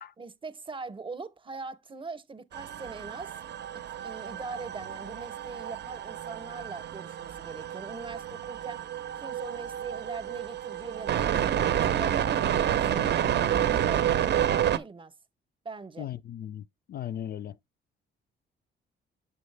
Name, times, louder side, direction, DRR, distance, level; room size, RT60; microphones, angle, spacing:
voice 1, 0.2-3.3 4.0-8.8 9.2-12.2 12.5-15.1 15.6-16.1, right 4 dB, 25° right, 0.7 m, -41 dB
sound 1, 2.5-14.8, right 10 dB, 60° right, 0.6 m, -29 dB
voice 2, 16.0-17.6, left 10 dB, 50° left, 0.4 m, -37 dB
7.0 x 5.5 x 3.2 m
cardioid pair, 90°, 20 cm